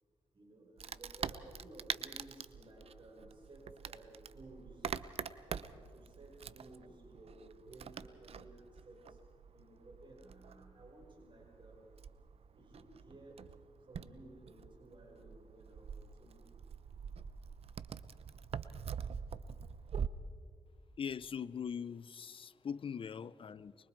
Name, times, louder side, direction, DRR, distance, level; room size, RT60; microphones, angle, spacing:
voice 1, 0.3-4.9 5.5-9.2 9.5-11.8 12.5-13.4 13.9-16.4, right 1 dB, 50° right, 5.3 m, -56 dB
Wood, 0.8-20.1, right 7 dB, 70° right, 0.8 m, -45 dB
voice 2, 21.0-23.7, left 7 dB, 55° left, 0.7 m, -41 dB
25.0 x 23.0 x 4.7 m
cardioid pair, 65°, 11 cm